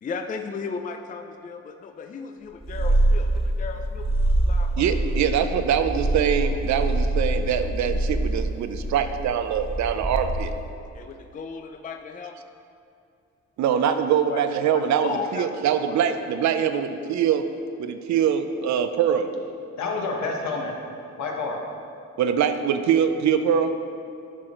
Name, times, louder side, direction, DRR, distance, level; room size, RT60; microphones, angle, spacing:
voice 1, 0.0-4.1 4.5-4.9 10.9-12.4 13.7-13.8 14.3-14.4 14.7-15.6 15.9-16.0 16.7-16.8, left 5 dB, 30° left, 6 dB, 0.4 m, -35 dB
Purr, 2.6-10.7, right 1 dB, 20° right, 1.4 m, -25 dB
voice 2, 4.8-10.5 13.6-17.4 17.8-19.3 22.2-23.7, right 8 dB, 65° right, 9 dB, 0.6 m, -23 dB
voice 3, 19.8-20.7 21.2-21.6, left 3 dB, 65° left, 0 dB, 1.3 m, -28 dB
11.0 x 4.2 x 3.8 m, 2.6 s
cardioid pair, 90°, 30 cm